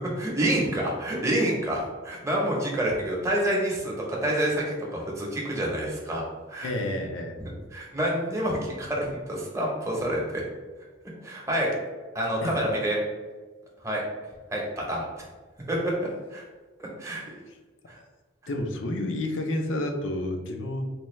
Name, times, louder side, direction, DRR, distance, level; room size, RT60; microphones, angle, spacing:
voice 1, 0.2-6.2 6.5-6.7 7.4-10.4 11.2-11.7 12.1-13.0 13.8-14.0 14.5-15.0 15.7-16.4 16.8-17.2 17.9-18.0, right 1 dB, 15° right, -3 dB, 0.8 m, -28 dB
voice 2, 6.6-7.4 12.4-12.6 17.1-17.2 18.5-20.9, left 1 dB, 70° left, 4 dB, 0.5 m, -30 dB
4.2 x 2.3 x 3.1 m, 1.3 s
head